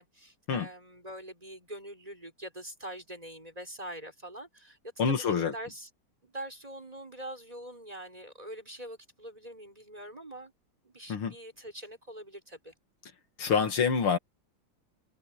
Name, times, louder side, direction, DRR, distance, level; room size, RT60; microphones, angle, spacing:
voice 1, 0.0-4.8 5.1-5.9 6.2-10.5 10.8-12.7, right 1 dB, 15° right, 6.0 m, -44 dB
voice 2, 5.0-5.5 11.1-11.3 13.4-14.2, left 6 dB, 75° left, 2.8 m, -26 dB
omnidirectional pair, 2.4 m